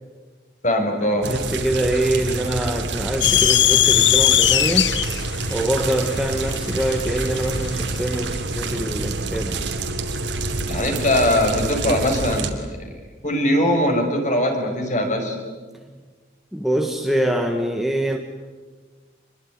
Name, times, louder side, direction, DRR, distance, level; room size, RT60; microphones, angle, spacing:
voice 1, 0.6-1.3 10.7-12.9 13.2-15.4, left 1 dB, 40° left, 3 dB, 5.9 m, -21 dB
sound 1, 1.2-12.5, right 3 dB, 80° right, 3.1 m, -27 dB
voice 2, 1.3-4.9 5.5-9.7 16.5-18.2, right 1 dB, ahead, 3 dB, 1.5 m, -24 dB
sound 2, 3.2-7.7, left 12 dB, 80° left, 1.0 m, -19 dB
27.0 x 22.5 x 9.9 m, 1.4 s
head